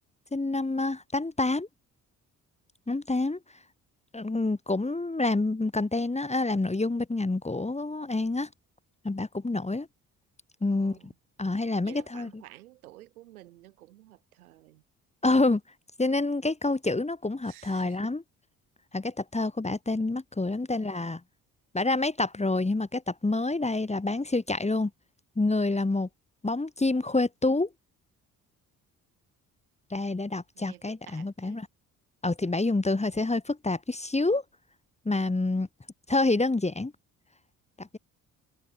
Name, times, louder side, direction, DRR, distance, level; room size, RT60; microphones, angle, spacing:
voice 1, 0.3-1.7 2.9-3.4 4.1-8.5 9.0-9.9 10.6-11.1 11.4-12.3 15.2-15.6 16.0-18.2 18.9-21.2 21.7-24.9 25.4-26.1 26.4-27.7 29.9-31.7 32.2-34.4 35.1-35.7 36.1-36.9 37.8-38.0, left 2 dB, 15° left, 1.9 m, -27 dB
voice 2, 10.7-11.1 11.8-14.8 17.4-18.1 20.7-21.0 30.5-31.6 32.9-33.1, right 16 dB, 90° right, 6.5 m, -52 dB
hypercardioid pair, 50°, 42 cm